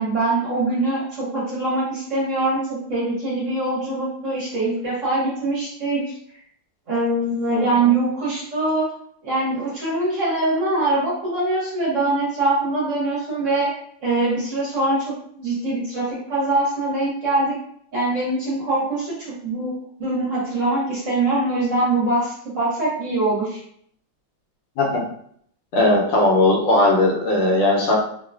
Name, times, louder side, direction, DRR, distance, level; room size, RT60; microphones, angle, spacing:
voice 1, 0.0-6.0 6.9-8.9 9.2-13.7 14.0-17.6 17.9-19.7 20.0-23.6, right 2 dB, 50° right, -7 dB, 1.1 m, -23 dB
voice 2, 7.5-7.9 24.8-25.0 25.7-28.0, left 2 dB, 75° left, -2 dB, 1.3 m, -18 dB
3.1 x 2.2 x 2.3 m, 0.66 s
omnidirectional pair, 2.1 m